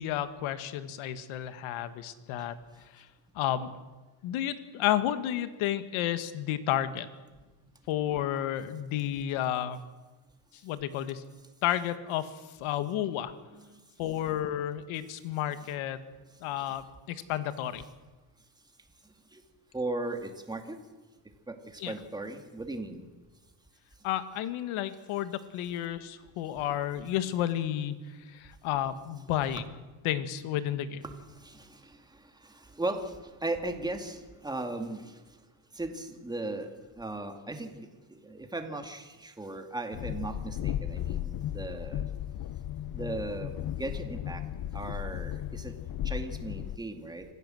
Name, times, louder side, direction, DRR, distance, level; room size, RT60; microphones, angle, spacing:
voice 1, 0.0-2.5 2.9-3.1 3.4-3.7 4.2-7.1 7.9-9.8 10.6-11.2 11.6-12.3 12.6-13.3 14.0-16.0 16.4-17.8 21.8-21.9 24.0-28.0 28.3-29.6 30.0-31.0, left 11 dB, 90° left, 12 dB, 1.7 m, -31 dB
voice 2, 13.5-13.8 16.7-16.8 19.3-19.4 19.7-20.8 21.5-23.0 31.0-35.2 35.7-36.7 37.0-42.0 42.9-44.4 44.7-45.7 46.0-47.3, right 2 dB, 10° right, 5 dB, 2.2 m, -37 dB
Train, 39.9-46.8, left 11 dB, 50° left, 0.7 m, -35 dB
26.0 x 15.5 x 7.7 m, 1.2 s
cardioid pair, 135°, 47 cm